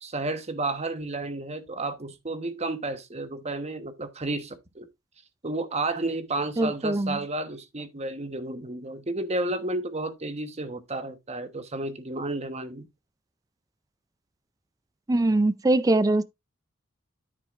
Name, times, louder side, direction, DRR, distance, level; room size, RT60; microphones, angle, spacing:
voice 1, 0.0-4.9 5.4-12.9, right 2 dB, 35° right, 1.2 m, -32 dB
voice 2, 6.6-7.2 15.1-16.2, right 2 dB, 20° right, 0.4 m, -22 dB
10.0 x 8.0 x 2.5 m
head